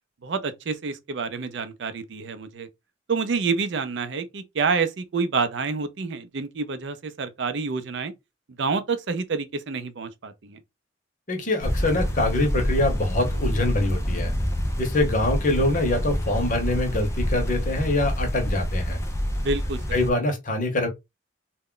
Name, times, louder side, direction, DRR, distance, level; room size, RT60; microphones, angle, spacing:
voice 1, 0.2-2.7 3.1-8.1 8.6-10.6 19.4-20.0, right 4 dB, 65° right, 0.5 m, -28 dB
voice 2, 11.3-14.3 14.8-19.0 19.9-20.9, left 2 dB, 45° left, 0.8 m, -24 dB
sound 1, 11.6-20.1, equal, 15° left, 0.3 m, -27 dB
2.2 x 2.0 x 3.7 m
head